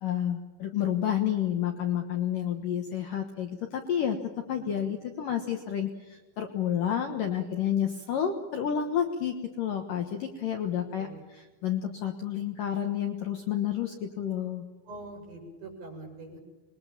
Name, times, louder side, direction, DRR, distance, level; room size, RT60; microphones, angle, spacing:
voice 1, 0.0-14.6, left 9 dB, 60° left, 5 dB, 2.5 m, -30 dB
voice 2, 14.9-16.4, right 2 dB, 40° right, 1 dB, 8.8 m, -44 dB
26.5 x 22.0 x 7.3 m, 1.2 s
omnidirectional pair, 5.3 m